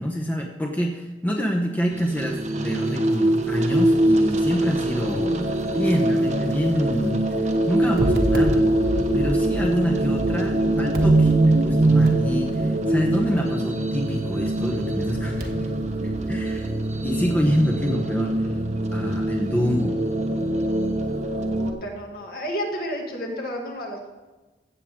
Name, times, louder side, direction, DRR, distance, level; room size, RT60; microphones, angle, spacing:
voice 1, 0.0-8.6 9.1-15.7 16.0-16.7 17.0-18.5 18.9-20.0, equal, 10° left, 1 dB, 0.9 m, -26 dB
sound 1, 1.9-21.7, right 1 dB, 40° right, 1.0 m, -24 dB
sound 2, 7.8-14.6 15.1-15.5 16.1-16.2, right 2 dB, 60° right, 1.4 m, -23 dB
voice 2, 21.5-24.1, equal, 55° left, -1 dB, 2.3 m, -31 dB
15.5 x 7.6 x 3.7 m, 1.2 s
head